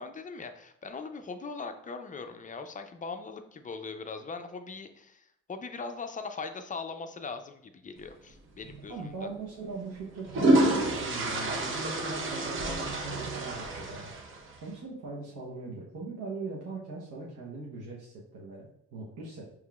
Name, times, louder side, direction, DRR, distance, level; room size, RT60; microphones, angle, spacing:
voice 1, 0.0-9.3, left 4 dB, 25° left, 7 dB, 0.4 m, -40 dB
sound 1, 8.6-8.8 10.0-14.6, right 2 dB, 40° right, 0.8 m, -28 dB
voice 2, 8.9-14.1 14.6-19.5, right 3 dB, 75° right, -5 dB, 0.9 m, -41 dB
5.7 x 3.0 x 2.3 m, 0.74 s
cardioid pair, 90°, 30 cm